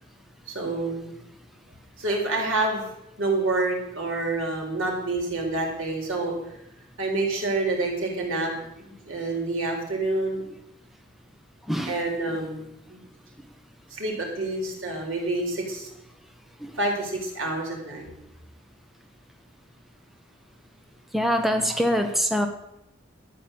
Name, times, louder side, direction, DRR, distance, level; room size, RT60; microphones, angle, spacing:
voice 1, 0.5-1.1 2.0-2.8 3.2-6.3 7.0-10.4 11.9-13.0 13.9-15.9 16.8-18.1, right 2 dB, 85° right, 0 dB, 4.7 m, -28 dB
voice 2, 21.1-22.5, equal, ahead, 5 dB, 1.0 m, -24 dB
13.0 x 8.9 x 7.8 m, 0.84 s
head